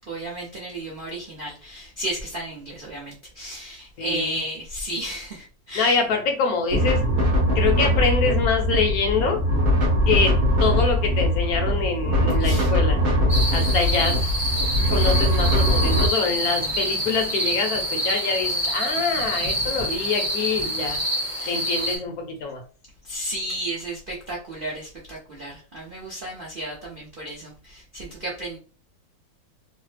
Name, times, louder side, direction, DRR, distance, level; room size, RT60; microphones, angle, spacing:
voice 1, 0.1-6.0 12.4-12.7 21.4-21.6 23.0-28.6, right 1 dB, 70° right, -4 dB, 0.5 m, -33 dB
voice 2, 4.0-4.4 5.7-7.0 7.5-9.4 10.1-13.0 13.5-14.2 14.9-21.0 21.5-22.6, left 4 dB, 65° left, 4 dB, 0.9 m, -25 dB
sound 1, 6.7-16.1, equal, 45° right, 1.0 m, -21 dB
sound 2, 13.3-22.0, equal, 20° right, 0.7 m, -27 dB
3.2 x 2.0 x 3.2 m, 0.36 s
omnidirectional pair, 2.1 m